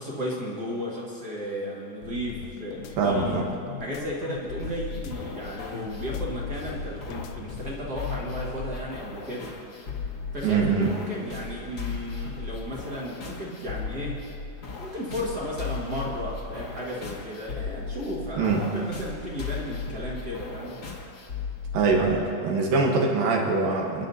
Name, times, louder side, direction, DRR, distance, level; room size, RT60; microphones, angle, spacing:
voice 1, 0.0-3.4 3.8-9.5 10.3-14.2 14.8-20.8, equal, 40° right, -4 dB, 1.4 m, -34 dB
sound 1, 2.0-8.3, left 7 dB, 80° left, 2.2 m, -41 dB
voice 2, 3.0-3.5 10.4-10.9 18.4-18.6 21.7-24.1, right 4 dB, 75° right, 0 dB, 2.9 m, -23 dB
sound 2, 4.6-22.3, left 4 dB, 60° left, 1.0 m, -37 dB
29.5 x 10.5 x 2.7 m, 2.5 s
omnidirectional pair, 4.2 m